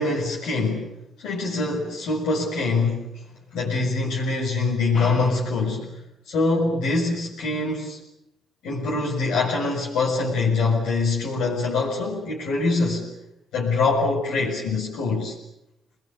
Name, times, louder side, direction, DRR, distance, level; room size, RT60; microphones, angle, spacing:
voice 1, 0.0-3.1 3.5-6.0 6.3-8.0 8.6-13.0 13.5-15.3, left 3 dB, 90° left, -5 dB, 6.8 m, -24 dB
27.5 x 21.5 x 8.9 m, 0.85 s
cardioid pair, 90°, 0 cm